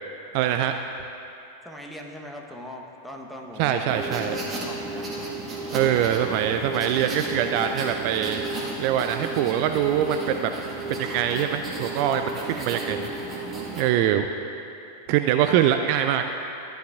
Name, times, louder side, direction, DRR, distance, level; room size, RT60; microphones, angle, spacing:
voice 1, 0.3-0.7 3.6-4.4 5.7-8.5 8.8-10.5 10.9-13.1 13.8-14.2 15.1-16.3, right 10 dB, 45° right, 6 dB, 0.3 m, -23 dB
voice 2, 1.6-5.1 12.4-12.8 14.0-14.6, left 1 dB, ahead, 0 dB, 1.0 m, -41 dB
sound 1, 3.9-13.8, right 2 dB, 20° right, 1.6 m, -33 dB
14.0 x 10.0 x 2.4 m, 2.9 s
figure-of-eight pair, 90°, 0 cm